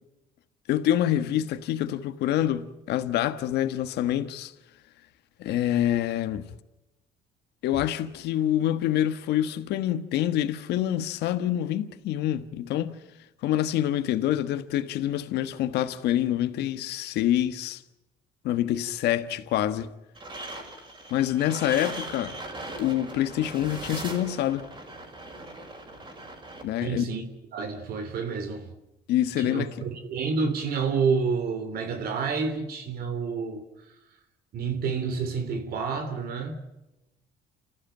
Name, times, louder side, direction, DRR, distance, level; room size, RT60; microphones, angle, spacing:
voice 1, 0.7-4.5 5.4-6.4 7.6-13.0 13.4-17.8 18.4-19.9 21.1-22.3 22.8-24.6 26.6-27.0 29.1-29.8, left 12 dB, 80° left, 1.4 m, -26 dB
sound 1, 20.1-26.6, right 2 dB, 30° right, 6.0 m, -39 dB
voice 2, 26.8-27.2 27.5-28.7 29.4-33.6 34.5-36.7, right 5 dB, 65° right, 3.1 m, -29 dB
29.0 x 15.0 x 9.0 m
cardioid pair, 110°, 17 cm